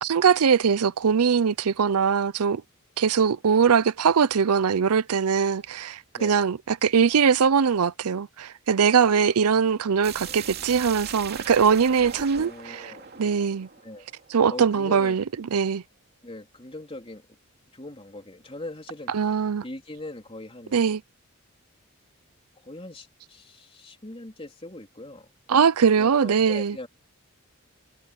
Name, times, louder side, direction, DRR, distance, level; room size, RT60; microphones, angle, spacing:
voice 1, 0.0-2.6 3.0-12.9 13.2-13.7 14.3-15.8 19.1-19.6 20.7-21.0 25.5-26.8, right 6 dB, 85° right, 0.5 m, -21 dB
sound 1, 10.0-14.8, right 7 dB, 45° right, 2.8 m, -39 dB
voice 2, 12.3-13.1 13.8-14.1 14.5-15.2 16.2-17.2 17.7-20.8 22.6-25.3 26.0-26.9, left 1 dB, 25° left, 3.7 m, -41 dB
head